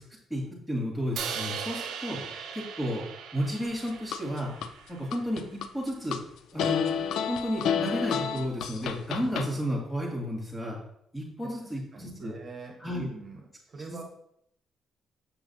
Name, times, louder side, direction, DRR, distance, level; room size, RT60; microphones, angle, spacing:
voice 1, 0.3-2.2 2.5-3.0 3.3-4.5 4.9-6.2 6.5-6.9 7.3-10.8 11.1-12.3 12.8-13.1 13.9-14.0, equal, 10° left, -3 dB, 2.4 m, -32 dB
Crash cymbal, 1.2-5.3, right 7 dB, 80° right, 0.6 m, -39 dB
sound 1, 3.7-4.7 5.1-6.2 6.6-9.5, left 8 dB, 80° left, 0.4 m, -30 dB
voice 2, 11.9-14.0, right 4 dB, 45° right, 1 dB, 1.1 m, -44 dB
6.3 x 5.9 x 2.8 m, 0.73 s
cardioid pair, 90°, 0 cm